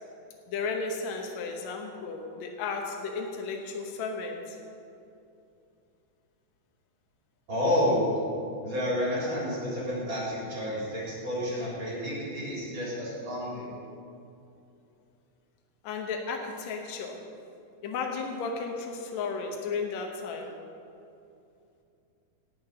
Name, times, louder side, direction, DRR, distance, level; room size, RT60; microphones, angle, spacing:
voice 1, 0.5-4.6 15.8-17.2 17.8-20.5, left 4 dB, 65° left, 2 dB, 2.2 m, -34 dB
voice 2, 7.5-8.0 8.6-13.7, equal, 35° right, -6 dB, 4.2 m, -30 dB
17.5 x 6.7 x 6.2 m, 2.6 s
omnidirectional pair, 3.7 m